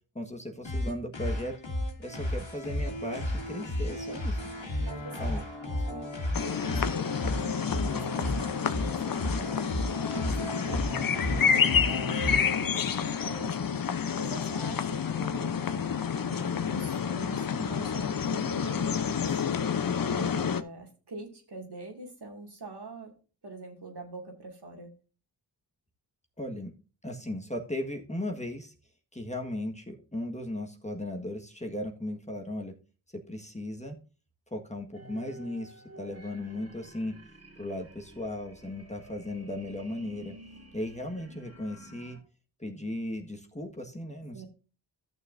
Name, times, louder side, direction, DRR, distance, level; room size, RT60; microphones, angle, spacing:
voice 1, 0.1-1.5 2.0-4.4 5.2-5.4 17.5-17.8 26.4-26.7 27.0-28.7 29.1-32.7 33.1-34.0 34.5-37.1 37.6-40.4 40.7-42.2 42.6-44.5, left 1 dB, 15° left, 2 dB, 1.5 m, -36 dB
sound 1, 0.6-12.6, left 1 dB, 70° left, 2.4 m, -33 dB
voice 2, 4.8-5.4 5.9-6.1 6.4-13.7 14.2-15.6 16.2-19.4 20.1-23.1 23.4-24.9 44.3-44.5, right 3 dB, 55° right, 2 dB, 2.4 m, -44 dB
sound 2, 6.3-20.6, left 7 dB, 45° left, 0.8 m, -29 dB
sound 3, 34.9-42.2, right 1 dB, 30° right, 2.3 m, -51 dB
14.0 x 6.5 x 2.6 m, 0.35 s
cardioid pair, 50°, 47 cm